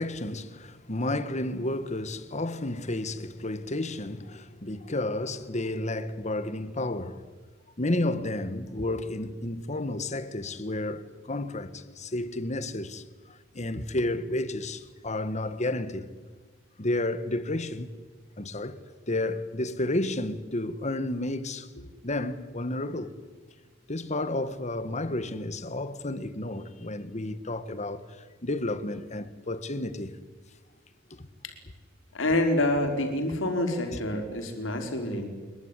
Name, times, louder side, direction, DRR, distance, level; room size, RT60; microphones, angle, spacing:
voice 1, 0.0-7.2 7.8-16.1 16.8-17.9 18.4-18.8 19.1-21.7 22.0-23.2 23.9-30.2 31.1-31.3 33.9-34.0, left 1 dB, 35° left, 1.6 m, -31 dB
voice 2, 32.1-35.3, left 1 dB, 85° left, 4.3 m, -27 dB
24.0 x 22.5 x 9.9 m
head